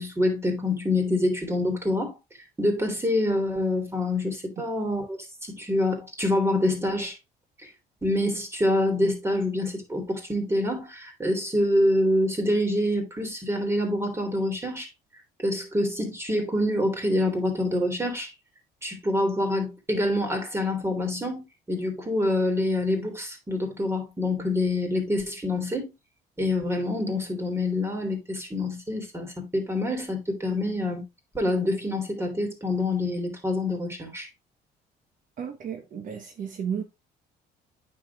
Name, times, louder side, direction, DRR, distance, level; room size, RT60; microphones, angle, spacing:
voice 1, 0.0-2.1 2.6-7.2 8.0-14.9 15.4-18.3 18.8-25.9 26.4-31.0 31.3-34.3, left 1 dB, 15° right, 3.1 m, -26 dB
voice 2, 35.4-36.8, right 7 dB, 50° right, 1.1 m, -33 dB
9.3 x 6.6 x 2.4 m
cardioid pair, 110°, 17 cm